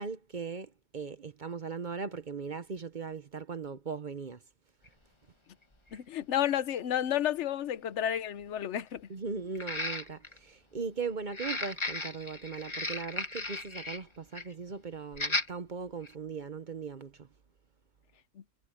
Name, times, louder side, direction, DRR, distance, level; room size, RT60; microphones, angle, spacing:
voice 1, 0.0-4.4 9.1-17.3, right 5 dB, 40° right, 0.7 m, -39 dB
sound 1, 4.9-5.0 5.9-6.0 6.5-6.6 9.6-10.4 11.3-14.0 14.3-14.5 15.1-15.5 16.0-16.1, left 2 dB, 20° left, 1.4 m, -35 dB
voice 2, 5.9-9.1, left 10 dB, 55° left, 0.9 m, -31 dB
omnidirectional pair, 1.7 m